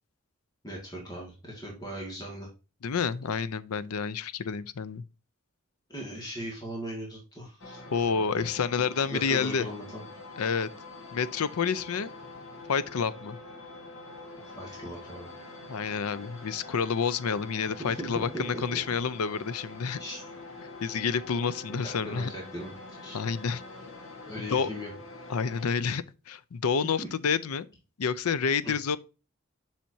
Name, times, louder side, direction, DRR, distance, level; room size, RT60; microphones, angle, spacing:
voice 1, 0.6-2.5 5.9-7.8 8.3-10.0 14.6-15.3 17.8-18.8 20.0-20.3 21.8-22.7 23.0-23.2 24.3-24.9 27.0-27.1 28.6-28.7, equal, 20° left, 1.9 m, -39 dB
voice 2, 2.8-5.0 7.9-9.7 10.4-10.7 11.1-12.1 12.7-13.4 15.7-20.0 20.8-22.3 23.1-23.6 24.5-24.7 25.3-27.7 28.0-29.0, left 6 dB, 90° left, 0.5 m, -29 dB
sound 1, 7.6-25.7, left 2 dB, 65° left, 1.4 m, -45 dB
7.4 x 5.7 x 2.7 m
head